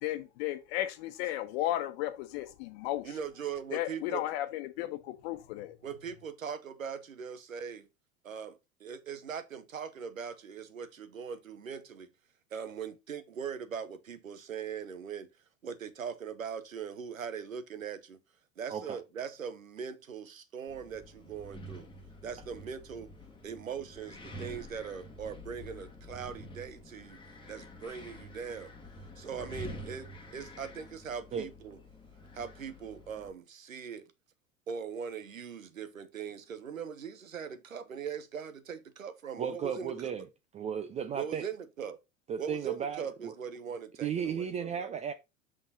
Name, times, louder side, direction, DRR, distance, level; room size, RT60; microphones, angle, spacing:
voice 1, 0.0-3.1 3.7-5.8, left 14 dB, 50° left, 1.3 m, -34 dB
voice 2, 3.0-4.2 5.8-7.9 8.2-12.1 12.5-15.3 15.6-18.2 18.6-21.9 22.2-23.1 23.4-27.2 27.5-28.7 29.2-31.8 32.3-34.1 34.7-40.1 41.1-42.0 42.4-45.0, right 7 dB, 75° right, 0.9 m, -40 dB
Wind, 20.7-33.3, equal, 10° left, 1.5 m, -48 dB
voice 3, 39.4-40.3 40.5-41.4 42.3-43.3 44.0-45.1, right 7 dB, 15° right, 0.5 m, -35 dB
6.1 x 5.4 x 4.0 m
figure-of-eight pair, 80°, 40 cm